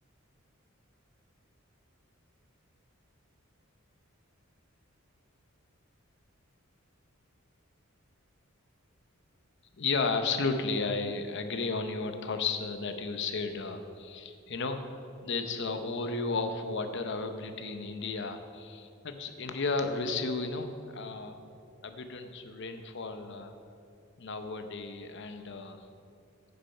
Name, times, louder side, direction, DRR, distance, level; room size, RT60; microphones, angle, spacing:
voice 1, 9.8-14.8 15.2-21.4 21.8-23.5 24.2-25.9, left 4 dB, 60° left, 8 dB, 0.8 m, -33 dB
9.7 x 6.9 x 5.5 m, 2.5 s
head